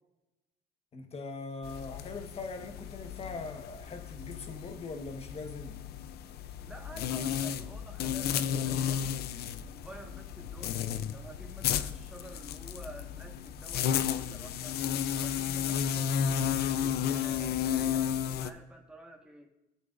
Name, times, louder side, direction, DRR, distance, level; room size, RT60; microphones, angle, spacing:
voice 1, 0.9-5.8, left 3 dB, 35° left, 1.4 m, -41 dB
sound 1, 1.6-18.5, left 9 dB, 70° left, 0.6 m, -33 dB
sound 2, 3.0-17.7, left 1 dB, 15° left, 1.2 m, -53 dB
voice 2, 6.6-9.3 9.6-10.8 11.1-14.8 15.1-19.5, right 1 dB, 5° right, 1.6 m, -50 dB
16.5 x 8.1 x 2.6 m
cardioid pair, 110°, 17 cm